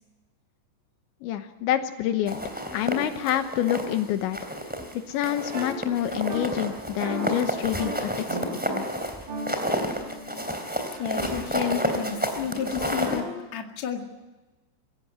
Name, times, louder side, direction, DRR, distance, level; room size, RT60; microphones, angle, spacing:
voice 1, 1.2-2.4 2.7-4.4 5.1-8.4 8.7-8.8, left 11 dB, 80° left, 8 dB, 3.3 m, -27 dB
sound 1, 2.3-4.0 4.3-4.9 5.2-13.2, equal, 5° right, 2.1 m, -30 dB
sound 2, 5.5-5.7 6.3-6.4 7.0-7.3 7.8-7.9 8.3-8.8 9.3-11.5 12.8-13.3, equal, 50° right, 8.2 m, -37 dB
voice 2, 11.0-14.0, left 7 dB, 45° left, 3 dB, 2.7 m, -31 dB
25.5 x 16.0 x 9.5 m, 1.2 s
omnidirectional pair, 5.4 m